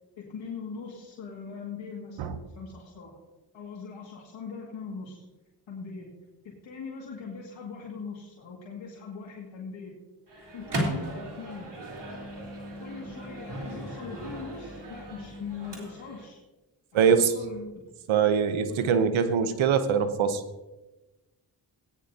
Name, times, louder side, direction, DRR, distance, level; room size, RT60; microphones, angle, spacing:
voice 1, 0.2-3.1 3.5-5.3 5.7-6.1 6.4-10.0 10.5-11.7 12.8-16.4 16.9-17.8 18.7-18.9 19.2-19.3, left 5 dB, 75° left, -3 dB, 2.2 m, -41 dB
Microwave oven, 10.3-16.3, right 1 dB, 60° right, 3.4 m, -36 dB
voice 2, 16.9-17.3 18.1-20.4, right 7 dB, 85° right, 11 dB, 1.0 m, -23 dB
16.5 x 9.8 x 2.8 m, 1.1 s
supercardioid pair, 40°, 46 cm